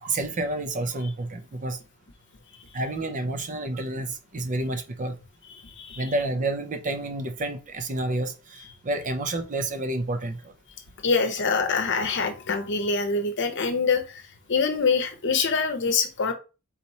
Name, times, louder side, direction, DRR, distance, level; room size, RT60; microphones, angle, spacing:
voice 1, 0.0-1.8 2.7-5.2 6.0-10.5, right 2 dB, 35° right, 0.5 m, -29 dB
voice 2, 5.6-6.0 11.0-14.2 14.5-16.3, left 4 dB, 55° left, 0.8 m, -25 dB
4.2 x 2.9 x 4.2 m
head